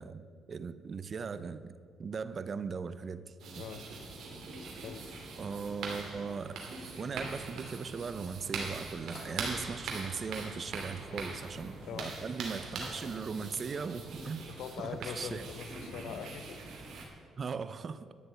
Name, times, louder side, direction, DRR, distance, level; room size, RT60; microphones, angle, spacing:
voice 1, 0.0-1.7 2.0-3.6 5.4-6.6 7.0-14.4 14.8-15.4 17.4-18.1, right 5 dB, 45° right, 14 dB, 0.6 m, -39 dB
sound 1, 3.4-17.1, right 3 dB, 75° right, 2.4 m, -42 dB
sound 2, 8.0-15.4, left 1 dB, 20° left, 2.9 m, -58 dB
voice 2, 11.1-11.4 11.8-12.1 14.5-16.6, left 7 dB, 80° left, 10 dB, 0.8 m, -42 dB
11.5 x 6.7 x 8.1 m, 2.2 s
cardioid pair, 90°, 0 cm